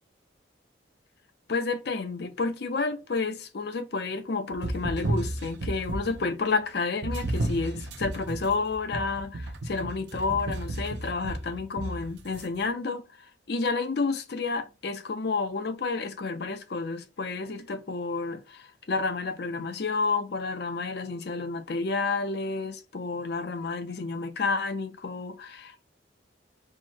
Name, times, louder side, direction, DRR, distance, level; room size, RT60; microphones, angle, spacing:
voice 1, 1.5-13.0 13.5-25.8, left 4 dB, 60° left, 0.5 m, -30 dB
sound 1, 4.5-6.3 7.0-12.4, right 1 dB, 65° right, 0.6 m, -33 dB
4.5 x 2.1 x 4.4 m
head